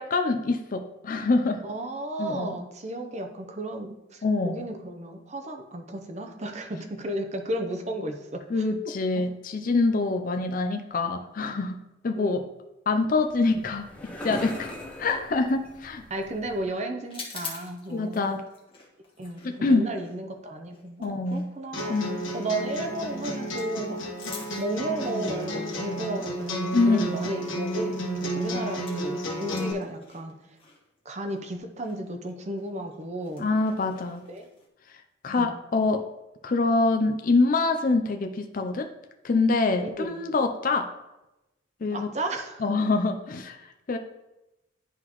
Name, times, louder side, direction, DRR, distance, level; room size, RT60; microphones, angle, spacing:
voice 1, 0.0-1.6 2.2-2.6 4.2-4.7 8.5-12.4 12.9-13.9 14.2-16.0 17.9-18.4 19.4-19.9 21.0-21.5 21.9-22.3 26.7-27.1 33.4-34.2 35.2-36.0 36.4-38.9 39.2-40.9 41.8-42.1 42.6-44.0, left 3 dB, 40° left, 5 dB, 0.4 m, -25 dB
voice 2, 1.6-8.6 12.1-12.4 16.1-18.2 19.2-22.0 22.3-24.0 24.3-30.4 31.0-33.5 34.3-34.5 35.4-35.5 39.8-40.2 41.9-42.7, right 1 dB, 35° right, 5 dB, 0.7 m, -34 dB
sound 1, 13.1-16.7, equal, 5° left, 0.8 m, -41 dB
sound 2, 17.0-29.1 29.4-34.7, left 4 dB, 25° left, 1.3 m, -47 dB
sound 3, 21.7-29.7, equal, 75° left, 1.3 m, -32 dB
11.0 x 3.8 x 3.0 m, 0.96 s
head